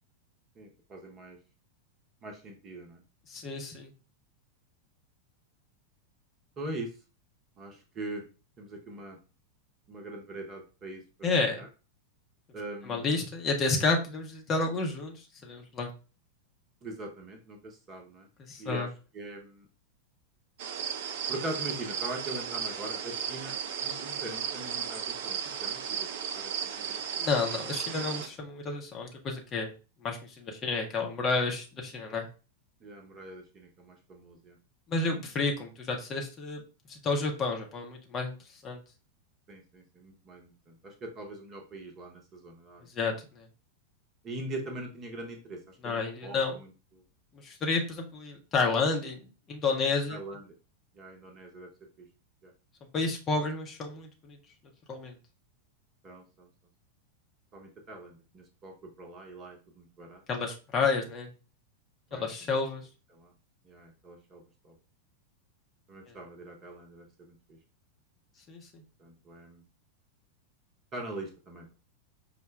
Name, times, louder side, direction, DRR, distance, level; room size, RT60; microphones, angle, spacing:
voice 1, 0.6-1.4 2.2-3.0 6.6-6.9 7.6-8.2 8.6-9.2 9.9-11.3 11.6-11.7 12.5-13.0 16.8-18.3 18.6-19.7 21.3-23.5 23.8-27.0 32.8-34.6 39.5-42.9 44.2-47.0 50.1-50.5 50.9-51.7 52.0-52.1 52.4-52.5 56.0-56.5 57.5-60.2 62.1-62.5 63.1-63.3 63.6-64.7 65.9-67.6 69.0-69.6 70.9-71.7, right 2 dB, 30° right, 3 dB, 0.9 m, -42 dB
voice 2, 3.3-3.9 11.2-11.6 12.9-15.2 15.4-15.9 18.4-18.9 27.2-29.7 30.0-32.3 34.9-36.6 36.9-38.4 38.6-38.8 42.9-43.4 45.8-46.6 47.4-50.2 52.9-54.4 54.9-55.1 60.3-61.3 62.1-62.8 68.5-68.8, left 3 dB, 25° left, 2 dB, 0.8 m, -30 dB
sound 1, 20.6-28.3, right 8 dB, 50° right, 0.5 m, -35 dB
5.4 x 2.2 x 3.2 m, 0.33 s
figure-of-eight pair, 90°, 0 cm